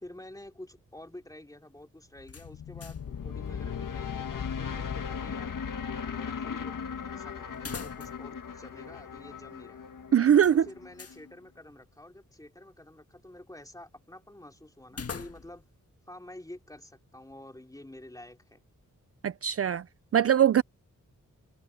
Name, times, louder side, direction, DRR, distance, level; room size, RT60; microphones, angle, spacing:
voice 1, 0.0-5.5 6.0-6.8 7.1-9.8 10.5-15.6 16.1-18.6, left 1 dB, 10° left, 2.9 m, -49 dB
sound 1, 2.2-11.3, left 7 dB, 80° left, 1.7 m, -38 dB
sound 2, 2.3-3.2 3.5-3.6 7.5-8.4 8.7-8.8 10.4-11.2 14.9-15.7, left 5 dB, 50° left, 1.7 m, -42 dB
voice 2, 10.1-10.7 19.2-19.8 20.1-20.6, right 9 dB, 50° right, 0.4 m, -21 dB
wide cardioid pair, 100°, 32 cm